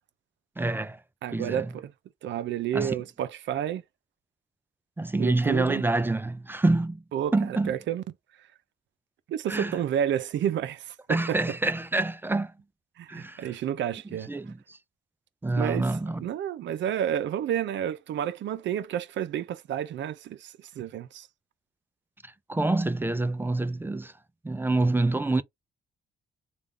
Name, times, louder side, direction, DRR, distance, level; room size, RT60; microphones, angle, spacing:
voice 1, 0.6-1.0 1.3-1.7 2.7-2.9 5.0-7.0 7.3-7.7 9.5-9.8 11.1-12.5 13.1-13.5 14.3-14.8 15.4-16.3 22.2-24.1 24.4-25.4, right 2 dB, 10° right, 0.3 m, -27 dB
voice 2, 1.2-1.9 2.2-3.8 5.2-5.8 7.1-8.0 9.3-11.4 13.0-14.3 15.6-21.3, right 10 dB, 65° right, 0.6 m, -30 dB
3.5 x 2.4 x 3.2 m
cardioid pair, 90°, 20 cm